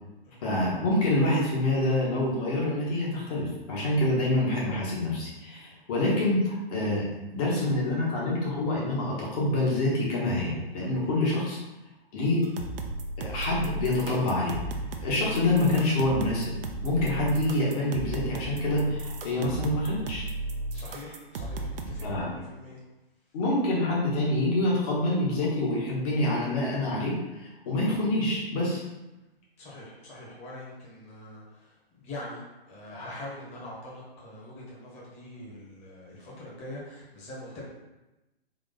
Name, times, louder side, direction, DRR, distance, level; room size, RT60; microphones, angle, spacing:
voice 1, 0.4-11.6 12.1-12.5 13.2-14.5 15.0-16.5 16.8-20.3 22.0-22.3 23.3-28.8, left 1 dB, 40° left, -4 dB, 1.5 m, -26 dB
sound 1, 12.4-22.2, right 2 dB, 65° right, 0.6 m, -35 dB
voice 2, 20.7-22.8 29.6-37.6, left 1 dB, 20° left, -5 dB, 1.4 m, -43 dB
3.7 x 3.0 x 3.8 m, 1.0 s
figure-of-eight pair, 125°, 31 cm